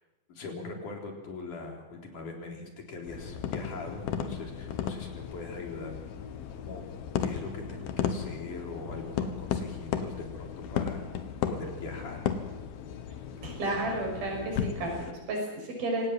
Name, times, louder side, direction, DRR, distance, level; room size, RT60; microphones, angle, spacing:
voice 1, 0.3-5.9 6.5-6.9 7.2-11.0 11.5-12.2, left 3 dB, 60° left, 1 dB, 5.2 m, -41 dB
sound 1, 3.1-15.1, left 8 dB, 90° left, 3.3 m, -35 dB
voice 2, 13.4-16.1, right 2 dB, 80° right, 1 dB, 7.8 m, -32 dB
25.5 x 18.5 x 7.6 m, 1.1 s
omnidirectional pair, 4.2 m